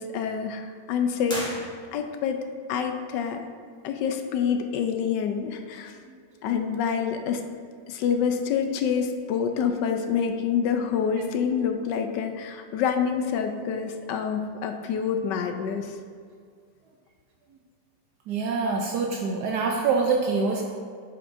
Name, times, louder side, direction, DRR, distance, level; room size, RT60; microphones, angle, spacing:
voice 1, 0.0-3.4 3.8-6.0 6.4-7.4 7.9-16.0, left 7 dB, 80° left, 6 dB, 1.2 m, -27 dB
sound 1, 1.2-2.3, equal, 5° left, 1.5 m, -36 dB
voice 2, 18.3-20.7, right 4 dB, 75° right, 1 dB, 1.1 m, -25 dB
8.0 x 7.0 x 2.6 m, 2.1 s
omnidirectional pair, 1.9 m